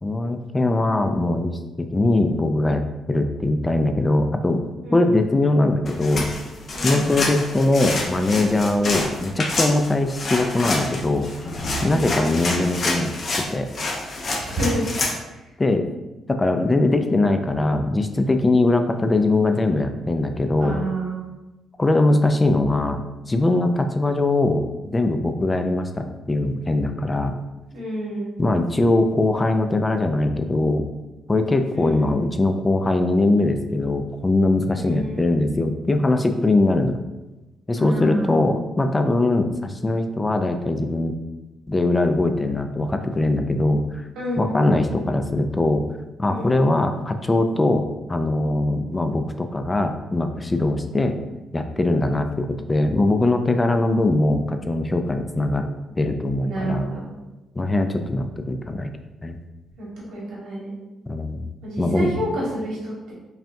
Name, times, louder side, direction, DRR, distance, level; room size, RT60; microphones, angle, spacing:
voice 1, 0.0-2.8 3.1-4.6 4.9-6.3 6.8-11.3 11.8-13.7 15.6-15.9 16.3-20.8 21.8-23.0 23.3-27.4 28.4-30.8 31.3-37.0 37.7-41.2 41.7-44.0 44.4-45.8 46.2-51.2 51.5-55.7 56.0-56.9 57.6-58.9 59.2-59.4 61.1-61.5 61.8-62.1, left 2 dB, 20° left, 6 dB, 0.3 m, -21 dB
voice 2, 4.8-5.1 6.7-7.2 11.8-12.2 14.3-14.8 15.3-15.4 20.6-21.3 27.7-28.3 31.7-32.2 34.7-35.3 37.7-38.3 44.1-44.6 46.3-46.5 56.4-57.0 59.8-60.7 61.6-63.1, right 1 dB, 85° right, -5 dB, 1.5 m, -29 dB
sound 1, 5.9-15.2, left 2 dB, 45° left, 0.7 m, -27 dB
5.5 x 2.2 x 2.6 m, 1.1 s
cardioid pair, 90°, 0 cm